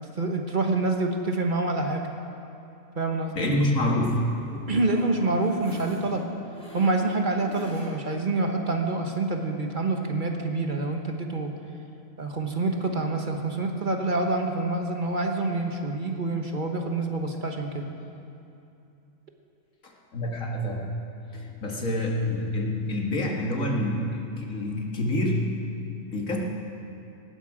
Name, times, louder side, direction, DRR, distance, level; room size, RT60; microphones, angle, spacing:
voice 1, 0.2-2.1 2.9-3.5 4.7-6.3 6.7-11.6 12.2-17.9, right 2 dB, 40° right, 3 dB, 1.3 m, -27 dB
voice 2, 3.4-4.3 19.8-20.9 21.3-25.5 26.0-26.4, left 1 dB, 85° left, -1 dB, 2.3 m, -27 dB
sound 1, 4.4-8.2 8.6-8.7 9.1-9.2, equal, 5° left, 3.5 m, -44 dB
18.5 x 15.5 x 5.0 m, 2.7 s
omnidirectional pair, 1.4 m